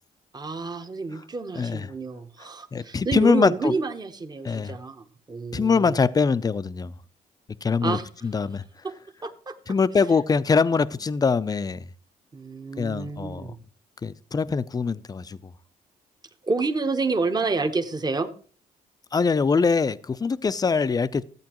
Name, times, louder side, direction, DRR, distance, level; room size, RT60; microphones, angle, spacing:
voice 1, 0.3-6.0 7.8-8.0 8.8-8.9 9.2-9.6 10.0-10.1 12.3-13.6 16.4-18.3, right 4 dB, 25° right, 0.9 m, -29 dB
voice 2, 1.5-1.9 2.7-3.7 4.4-4.8 5.5-6.9 7.6-8.6 9.7-11.9 12.8-13.5 14.0-15.4 19.1-21.2, left 5 dB, 25° left, 0.5 m, -23 dB
13.0 x 8.4 x 3.0 m
cardioid pair, 75°, 16 cm